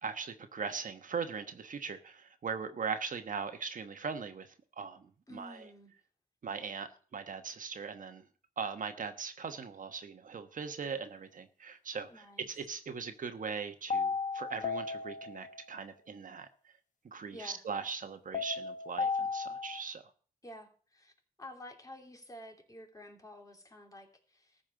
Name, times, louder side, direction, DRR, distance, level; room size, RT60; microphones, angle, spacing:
voice 1, 0.0-5.7 6.4-8.3 8.6-16.5 17.0-20.0, right 5 dB, 65° right, 8 dB, 1.2 m, -40 dB
voice 2, 5.3-5.9 12.1-12.5 17.3-17.6 20.4-21.1 21.4-24.6, left 1 dB, 25° left, 2 dB, 3.1 m, -50 dB
sound 1, 13.9-15.8 18.3-19.8, left 5 dB, 55° left, 1.1 m, -35 dB
14.0 x 5.5 x 7.6 m, 0.43 s
cardioid pair, 90°, 15 cm